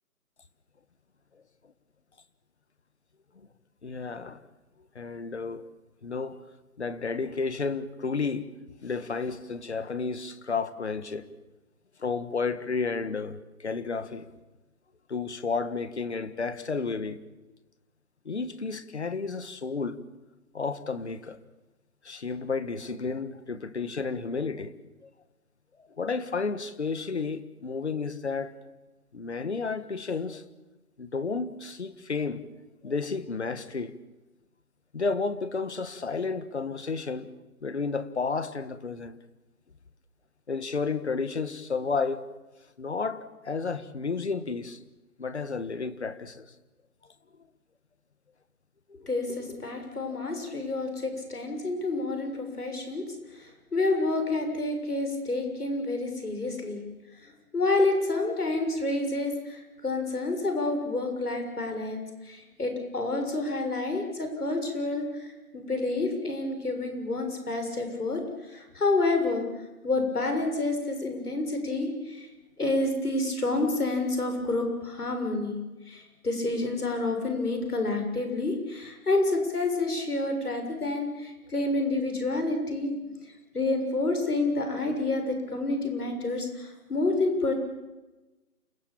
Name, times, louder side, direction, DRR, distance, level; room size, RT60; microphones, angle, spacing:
voice 1, 3.8-4.4 4.9-5.7 6.0-6.4 6.8-8.5 8.8-11.3 12.0-14.3 15.1-17.2 18.2-20.0 20.5-21.4 22.0-24.7 25.0-25.1 25.8-28.6 29.1-30.4 31.0-32.5 32.8-33.9 34.9-37.3 37.6-39.2 40.5-42.2 42.8-44.8 45.2-46.5, left 4 dB, 50° left, 1.6 m, -32 dB
voice 2, 49.0-53.0 53.3-56.8 57.2-69.5 69.8-72.3 72.6-75.6 75.9-83.1 83.5-87.5, left 2 dB, 90° left, 6.9 m, -29 dB
28.5 x 16.5 x 8.8 m
hypercardioid pair, 170°, 44 cm